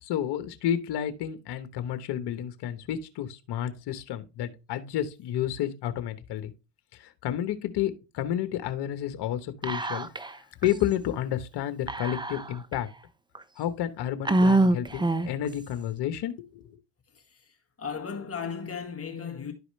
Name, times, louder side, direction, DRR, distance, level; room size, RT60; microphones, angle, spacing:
voice 1, 0.0-6.5 6.9-12.9 13.6-16.7, left 11 dB, 55° left, 1.2 m, -31 dB
Whispering, 9.6-10.3 10.6-10.7 11.9-12.7 13.4-13.5 14.3-15.5, right 2 dB, 10° right, 0.6 m, -25 dB
voice 2, 17.8-19.5, left 6 dB, 30° left, 1.8 m, -35 dB
11.5 x 4.8 x 3.2 m
hypercardioid pair, 75°, 47 cm